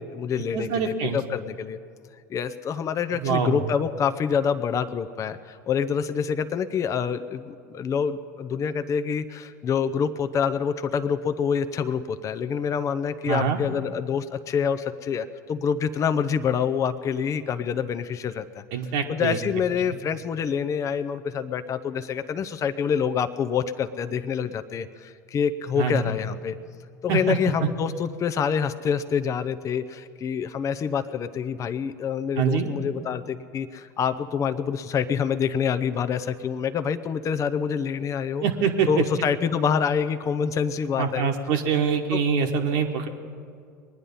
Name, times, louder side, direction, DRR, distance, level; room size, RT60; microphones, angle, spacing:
voice 1, 0.0-1.8 2.3-18.6 19.1-26.6 27.0-38.4 38.9-41.3 42.1-42.2, left 7 dB, 35° left, 10 dB, 0.6 m, -26 dB
voice 2, 0.5-1.2 3.2-3.6 13.3-13.6 18.7-19.4 25.8-26.0 27.1-27.7 32.4-32.7 38.4-39.0 41.0-43.1, right 6 dB, 60° right, 3 dB, 1.3 m, -24 dB
21.0 x 9.9 x 5.5 m, 2.2 s
hypercardioid pair, 80°, 10 cm